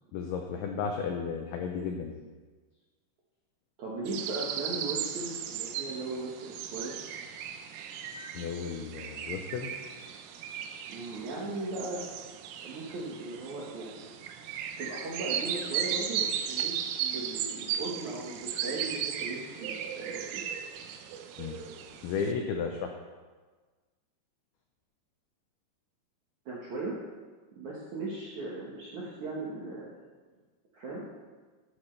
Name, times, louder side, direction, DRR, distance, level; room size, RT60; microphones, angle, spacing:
voice 1, 0.1-2.2 8.3-9.7 21.4-21.6 22.0-22.9, left 6 dB, 85° left, 3 dB, 2.2 m, -34 dB
voice 2, 3.8-7.0 10.9-12.0 12.6-14.1 14.8-20.2 26.5-27.0 27.6-29.9 30.7-31.0, right 2 dB, 65° right, -5 dB, 1.8 m, -38 dB
sound 1, 4.1-22.3, right 9 dB, 90° right, 3.4 m, -36 dB
13.0 x 12.5 x 3.3 m, 1.4 s
omnidirectional pair, 5.5 m